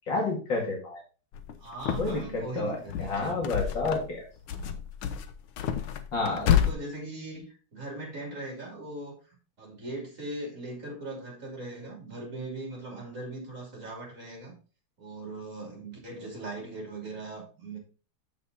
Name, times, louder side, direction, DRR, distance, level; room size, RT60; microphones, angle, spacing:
voice 1, 0.1-1.0 2.0-4.2 6.1-6.5, left 3 dB, 65° left, 0 dB, 2.7 m, -30 dB
sound 1, 1.3-2.4 2.7-4.2 4.5-6.7, left 9 dB, 90° left, 1.6 m, -29 dB
voice 2, 1.6-3.4 4.5-4.8 6.2-14.5 15.0-17.8, right 2 dB, 40° right, 0 dB, 3.2 m, -40 dB
6.7 x 6.7 x 3.9 m, 0.36 s
omnidirectional pair, 2.2 m